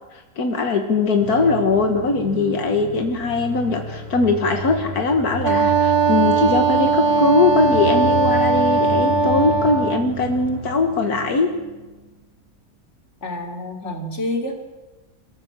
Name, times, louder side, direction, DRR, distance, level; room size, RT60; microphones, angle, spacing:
voice 1, 0.1-11.5 13.8-13.9, left 3 dB, 85° left, 4 dB, 2.1 m, -20 dB
sound 1, 1.2-11.9, right 3 dB, 90° right, 3.9 m, -32 dB
Wind instrument woodwind instrument, 5.4-10.1, right 3 dB, 45° right, 0.3 m, -19 dB
voice 2, 13.2-14.5, left 1 dB, 50° left, 3 dB, 3.3 m, -28 dB
28.0 x 14.0 x 7.3 m, 1.2 s
omnidirectional pair, 1.6 m